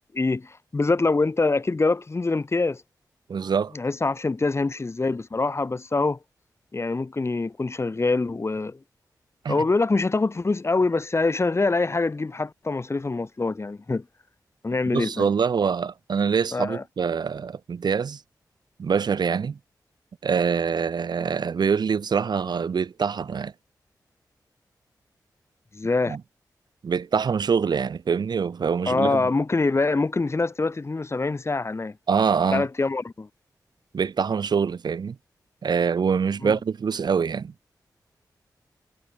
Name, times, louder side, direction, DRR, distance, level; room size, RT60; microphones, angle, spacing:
voice 1, 0.1-2.8 3.7-6.2 6.7-8.8 9.5-14.0 14.6-15.3 16.5-16.8 25.7-26.2 28.9-32.0 32.5-33.3 36.4-36.6, left 3 dB, 35° left, 6.1 m, -24 dB
voice 2, 3.3-3.7 9.4-9.6 14.9-18.2 18.8-19.6 20.2-23.5 26.1-26.2 26.8-29.3 32.1-32.7 33.9-35.2 35.6-37.5, right 6 dB, 75° right, 3.5 m, -24 dB
cardioid pair, 75°, 7 cm